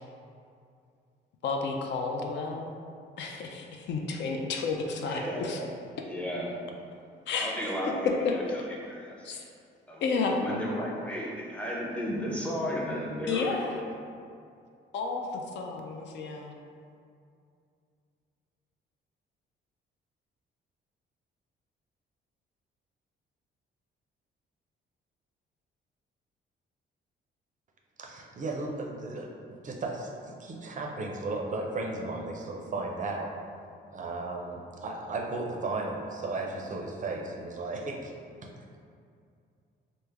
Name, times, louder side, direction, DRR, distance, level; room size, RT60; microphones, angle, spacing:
voice 1, 1.4-2.7 3.2-5.6 7.3-7.6 8.0-8.4 9.2-9.4 10.0-10.4 13.3-13.8 14.9-16.5, left 4 dB, 65° left, 2 dB, 0.4 m, -31 dB
voice 2, 5.0-5.8 6.1-6.7 7.4-9.3 9.9-10.1 10.4-13.8, equal, 5° left, -4 dB, 0.6 m, -34 dB
voice 3, 28.0-33.3 33.9-38.1 38.4-38.5, right 2 dB, 40° right, 0 dB, 0.4 m, -35 dB
3.3 x 2.0 x 3.4 m, 2.4 s
cardioid pair, 90°, 20 cm